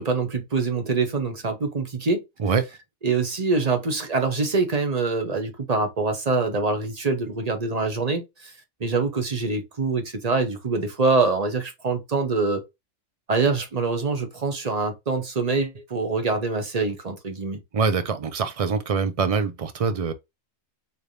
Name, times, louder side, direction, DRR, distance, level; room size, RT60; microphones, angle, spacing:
voice 1, 0.0-2.2 3.0-8.5 8.8-12.6 13.3-17.6, right 3 dB, 35° right, 0.9 m, -24 dB
voice 2, 17.7-20.1, right 5 dB, 55° right, 0.4 m, -24 dB
4.2 x 3.3 x 2.6 m
omnidirectional pair, 1.4 m